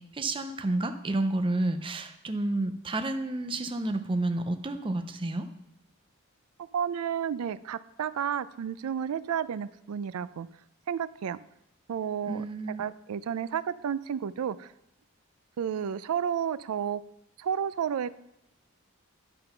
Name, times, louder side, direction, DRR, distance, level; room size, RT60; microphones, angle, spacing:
voice 1, 0.0-5.5 12.3-12.8, right 2 dB, 25° right, 6 dB, 0.5 m, -30 dB
voice 2, 6.7-10.5 10.9-11.4 11.9-12.4 12.8-14.7 15.6-17.0 17.4-18.1, right 8 dB, 85° right, 16 dB, 0.4 m, -31 dB
11.0 x 3.8 x 5.6 m, 0.83 s
head